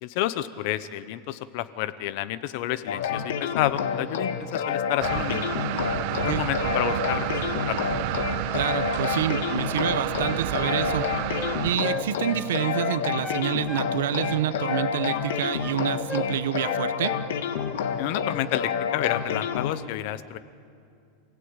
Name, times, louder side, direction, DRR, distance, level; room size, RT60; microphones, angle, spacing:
voice 1, 0.0-5.5 6.1-7.3 7.5-7.9 18.0-20.4, left 14 dB, 50° left, 14 dB, 0.9 m, -30 dB
sound 1, 2.9-19.7, left 7 dB, 85° left, 1.7 m, -29 dB
sound 2, 5.0-11.8, right 13 dB, 50° right, 0.7 m, -30 dB
voice 2, 8.5-11.1 11.6-17.2, right 11 dB, 90° right, 14 dB, 1.0 m, -28 dB
Wind instrument woodwind instrument, 10.4-13.9 14.2-15.8 16.1-16.3 16.6-17.3 17.5-17.8, left 2 dB, 5° left, 0.6 m, -36 dB
27.5 x 16.5 x 8.9 m, 2.5 s
supercardioid pair, 160°, 0 cm